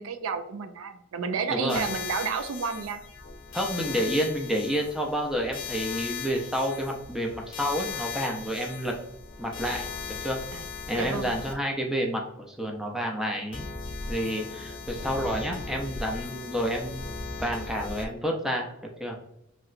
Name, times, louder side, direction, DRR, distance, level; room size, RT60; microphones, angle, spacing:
voice 1, 0.0-3.0 10.5-10.7 10.9-11.3, right 5 dB, 80° right, 8 dB, 0.4 m, -31 dB
voice 2, 1.5-1.8 3.5-8.9 9.4-10.4 10.9-13.7 14.1-17.0 17.4-19.2, equal, 5° right, 0 dB, 0.4 m, -29 dB
sound 1, 1.7-11.5 13.5-18.1, left 5 dB, 65° left, 0.5 m, -38 dB
3.1 x 2.8 x 2.5 m, 0.81 s
head